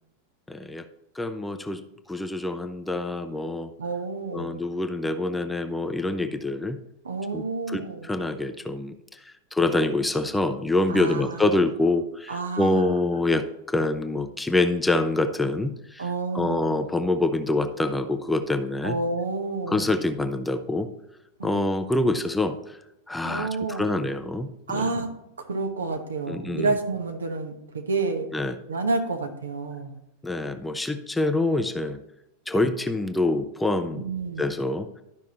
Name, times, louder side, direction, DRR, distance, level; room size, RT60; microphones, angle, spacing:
voice 1, 0.5-0.8 1.2-1.8 2.1-3.7 4.3-6.8 7.3-16.0 16.3-19.0 19.7-20.9 21.4-22.8 23.1-24.9 26.3-26.7 28.3-28.6 30.2-32.0 32.5-34.0 34.4-35.0, left 2 dB, 5° left, 9 dB, 0.6 m, -26 dB
voice 2, 3.8-4.6 7.0-8.1 10.9-11.6 12.3-13.0 16.0-16.8 18.8-19.9 21.4-21.6 23.2-24.0 24.7-25.1 25.4-28.3 28.7-29.9 33.9-34.5, right 3 dB, 70° right, 5 dB, 1.2 m, -29 dB
12.0 x 5.8 x 3.0 m, 0.89 s
figure-of-eight pair, 90°, 0 cm